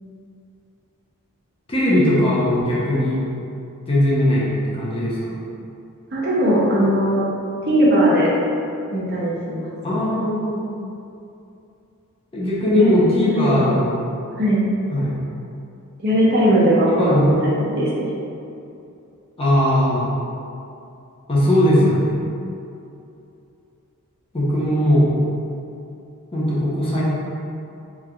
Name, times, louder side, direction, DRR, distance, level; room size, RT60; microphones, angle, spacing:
voice 1, 1.7-3.2 3.9-4.5 4.7-5.4 9.8-10.7 12.3-13.9 14.9-15.1 17.0-17.3 19.4-20.1 21.3-22.2 24.3-25.1 26.3-27.0, left 1 dB, 25° left, -8 dB, 0.7 m, -19 dB
voice 2, 6.1-7.2 7.6-8.3 8.9-9.7 12.7-13.8 14.4-14.7 16.0-18.1, equal, 45° right, -6 dB, 0.7 m, -19 dB
3.6 x 3.0 x 2.3 m, 2.7 s
head